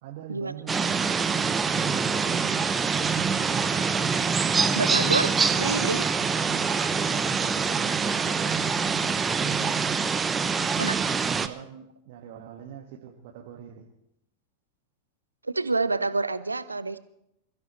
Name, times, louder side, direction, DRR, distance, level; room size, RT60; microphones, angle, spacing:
voice 1, 0.0-3.1 6.4-6.6 6.9-9.9 11.2-13.9, right 9 dB, 50° right, 1 dB, 1.7 m, -44 dB
sound 1, 0.7-11.5, right 5 dB, 15° right, 0.9 m, -25 dB
sound 2, 2.7-9.2, left 1 dB, 80° left, 2.1 m, -49 dB
voice 2, 4.7-5.3 5.6-6.0 10.8-11.0 15.4-17.0, right 3 dB, 80° right, 14 dB, 0.9 m, -27 dB
27.5 x 15.0 x 3.2 m, 0.78 s
figure-of-eight pair, 90°, 0 cm